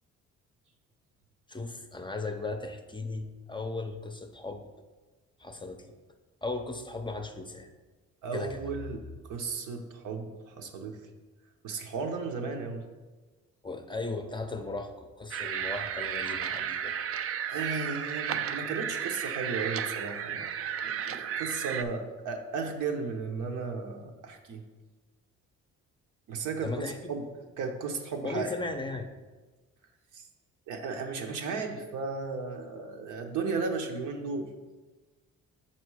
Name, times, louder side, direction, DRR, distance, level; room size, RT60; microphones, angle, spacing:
voice 1, 1.5-4.7 5.4-5.9 6.4-7.7 8.3-8.7 13.6-17.0 26.6-27.1 28.2-29.1, left 3 dB, 15° left, 6 dB, 0.5 m, -37 dB
voice 2, 8.2-11.0 11.6-12.8 17.5-20.5 20.8-24.6 26.3-27.2 27.6-28.5 30.1-30.3 30.7-34.5, right 4 dB, 80° right, 4 dB, 0.9 m, -35 dB
sound 1, 15.3-21.8, right 8 dB, 50° right, 0.4 m, -33 dB
6.1 x 4.3 x 4.7 m, 1.3 s
cardioid pair, 90°, 30 cm